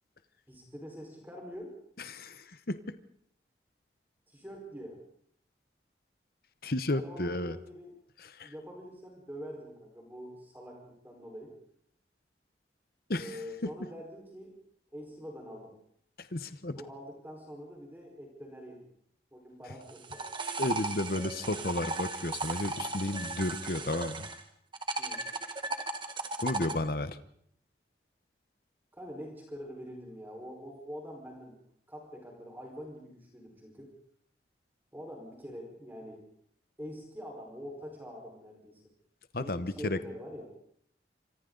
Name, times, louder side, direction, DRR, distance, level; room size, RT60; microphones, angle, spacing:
voice 1, 0.5-1.7 4.3-5.0 6.9-7.9 8.4-11.5 13.1-14.5 14.9-15.7 16.6-18.9 19.3-20.2 25.0-25.2 28.9-31.6 31.9-33.9 34.9-36.2 36.8-38.8 39.4-40.5, equal, 10° right, 0 dB, 4.7 m, -45 dB
voice 2, 2.1-3.0 6.6-7.6 8.2-8.5 13.1-13.7 16.2-16.8 20.6-24.3 26.4-27.2 39.3-40.0, left 1 dB, 55° left, 12 dB, 1.0 m, -33 dB
sound 1, 19.8-24.4 24.7-26.8, right 3 dB, 30° right, 1.8 m, -36 dB
28.0 x 25.0 x 4.0 m, 0.65 s
head